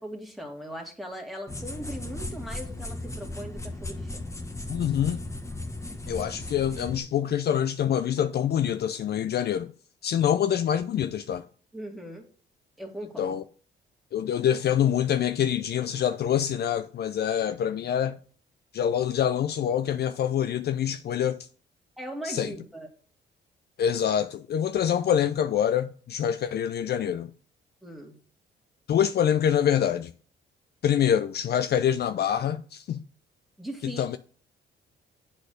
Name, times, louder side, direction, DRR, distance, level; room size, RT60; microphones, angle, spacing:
voice 1, 0.0-4.2 11.7-12.3 12.8-13.4 22.0-22.9 27.8-28.2 33.6-34.1, right 1 dB, ahead, 2.2 m, -39 dB
sound 1, 1.5-7.0, left 2 dB, 15° left, 1.2 m, -36 dB
voice 2, 4.7-5.2 6.1-9.7 10.0-11.4 13.2-13.4 14.1-18.2 18.7-21.5 22.2-22.5 23.8-27.3 28.9-30.1 30.8-33.0 33.8-34.2, left 9 dB, 55° left, 0.5 m, -25 dB
7.8 x 4.3 x 6.4 m
cardioid pair, 90°, 20 cm